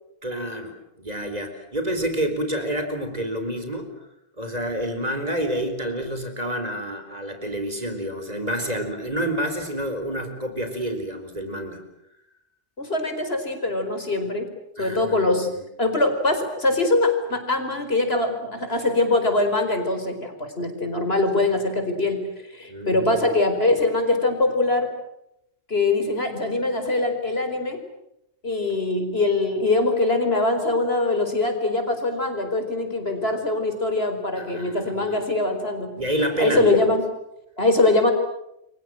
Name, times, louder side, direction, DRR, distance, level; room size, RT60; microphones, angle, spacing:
voice 1, 0.2-3.9 4.4-11.8 14.8-15.6 22.7-23.3 34.4-35.3 35.9-36.9, right 1 dB, 40° right, 7 dB, 4.3 m, -28 dB
voice 2, 12.8-14.5 14.8-15.5 15.8-22.2 22.5-24.9 25.7-27.8 28.4-35.9 36.4-37.0 37.6-38.1, left 2 dB, 70° left, 6 dB, 5.1 m, -22 dB
29.0 x 24.5 x 7.8 m, 0.81 s
omnidirectional pair, 1.1 m